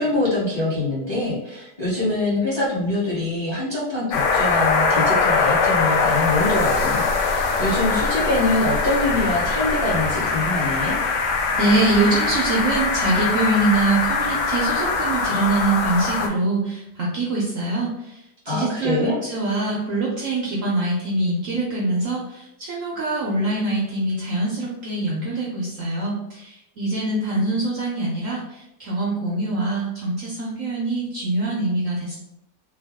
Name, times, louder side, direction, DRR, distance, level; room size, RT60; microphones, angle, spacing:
voice 1, 0.0-11.0 18.5-19.2, left 2 dB, 20° left, -7 dB, 0.9 m, -24 dB
sound 1, 4.1-16.3, left 4 dB, 75° left, 1.2 m, -22 dB
voice 2, 11.5-32.2, right 2 dB, 60° right, -4 dB, 0.9 m, -24 dB
3.5 x 2.3 x 3.4 m, 0.86 s
omnidirectional pair, 1.9 m